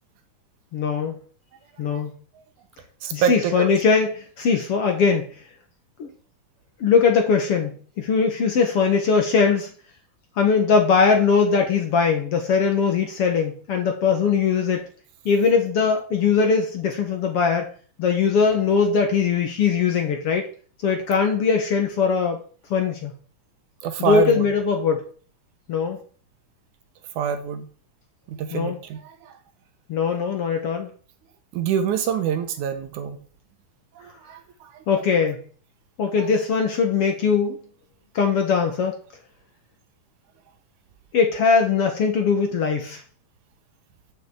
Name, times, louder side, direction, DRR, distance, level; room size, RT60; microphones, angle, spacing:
voice 1, 0.7-1.2 1.8-2.1 3.1-5.3 6.0-6.1 6.8-9.7 10.4-14.8 15.3-17.6 18.0-20.5 20.8-22.4 22.7-23.1 24.0-25.0 25.7-26.0 28.5-28.8 29.9-30.9 34.9-35.4 36.0-37.6 38.2-38.9 41.1-43.0, left 5 dB, 55° left, 4 dB, 1.9 m, -20 dB
voice 2, 3.0-3.7 23.8-24.5 27.2-27.7 28.3-29.1 31.5-33.2 34.3-34.4, right 8 dB, 70° right, 9 dB, 2.2 m, -25 dB
7.4 x 6.3 x 7.9 m, 0.42 s
omnidirectional pair, 3.9 m